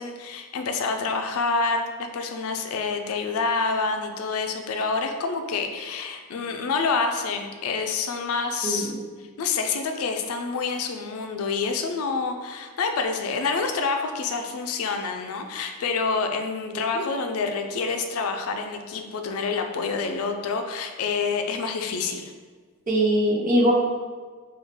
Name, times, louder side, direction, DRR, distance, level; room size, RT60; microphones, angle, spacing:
voice 1, 0.0-8.9 9.2-22.3, left 4 dB, 90° left, 5 dB, 0.4 m, -27 dB
voice 2, 8.6-9.0 16.7-17.0 22.9-23.7, equal, 40° right, -2 dB, 0.6 m, -22 dB
3.2 x 2.3 x 3.5 m, 1.5 s
head